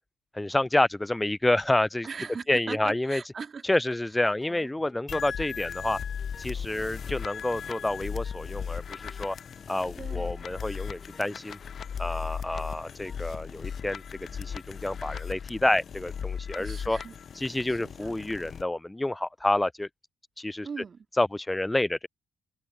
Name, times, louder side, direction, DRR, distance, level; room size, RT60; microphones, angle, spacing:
voice 1, 0.3-2.1 2.5-3.2 3.6-6.0 6.4-9.4 9.7-11.6 12.0-14.0 14.4-17.0 17.4-19.9 20.4-20.7 21.2-22.1, left 1 dB, 15° left, 0.4 m, -28 dB
voice 2, 2.0-3.8 4.5-4.7 10.0-10.5 16.6-17.1 17.7-18.2 20.6-21.1, right 5 dB, 45° right, 2.1 m, -40 dB
sound 1, 4.1-13.7, left 4 dB, 35° left, 3.1 m, -58 dB
sound 2, 5.1-18.6, left 7 dB, 55° left, 0.9 m, -37 dB
open air
hypercardioid pair, 40°, 0 cm